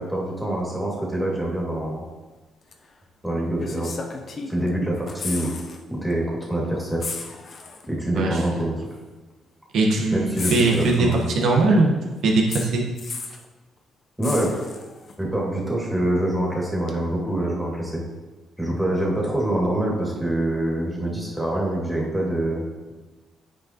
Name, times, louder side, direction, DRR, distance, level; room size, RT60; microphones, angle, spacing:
voice 1, 0.0-2.0 3.2-3.9 4.5-5.5 5.9-7.1 7.9-8.8 10.1-11.3 14.2-14.5 15.2-18.0 18.6-22.6, right 1 dB, ahead, -4 dB, 2.3 m, -25 dB
sound 1, 2.7-2.8 3.6-4.7 5.0-5.8 6.1-6.3 7.0-7.9 8.9-9.0 10.4-11.4 12.5-13.5 14.2-15.1 16.9-17.0, left 4 dB, 50° left, 0.8 m, -34 dB
voice 2, 9.7-12.0 12.2-12.8, right 2 dB, 70° right, 0 dB, 1.3 m, -20 dB
9.2 x 4.9 x 3.0 m, 1.2 s
cardioid pair, 90°, 0 cm